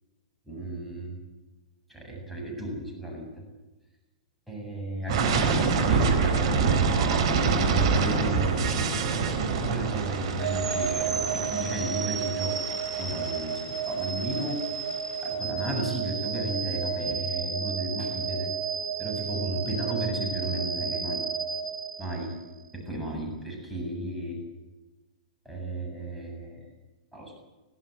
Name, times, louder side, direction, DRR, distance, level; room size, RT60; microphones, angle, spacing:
voice 1, 0.5-1.1 1.9-3.4 4.5-6.7 7.3-12.6 13.0-14.6 15.2-18.5 19.0-21.2 22.0-22.4 22.7-24.4 25.4-26.6 27.1-27.3, right 1 dB, ahead, -1 dB, 7.8 m, -33 dB
sound 1, 5.1-14.9, right 5 dB, 55° right, 4.5 m, -26 dB
sound 2, 10.4-22.5, right 6 dB, 75° right, 4.1 m, -32 dB
23.5 x 15.5 x 8.2 m, 1.1 s
figure-of-eight pair, 105°, 3 cm